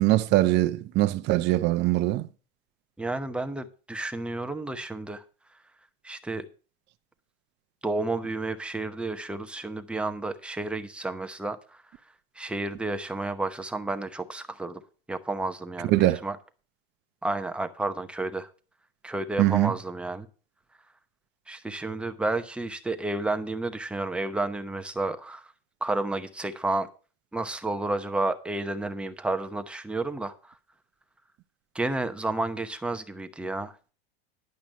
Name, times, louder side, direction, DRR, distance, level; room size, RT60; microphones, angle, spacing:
voice 1, 0.0-2.2 15.9-16.2 19.4-19.7, right 16 dB, 35° right, 0.8 m, -22 dB
voice 2, 3.0-5.2 6.0-6.5 7.8-11.8 12.4-14.8 15.1-16.4 17.2-18.5 19.0-20.3 21.5-25.5 25.8-26.9 27.3-30.5 31.7-33.9, right 2 dB, 5° right, 0.9 m, -31 dB
11.0 x 5.8 x 6.4 m
supercardioid pair, 130°, 30 cm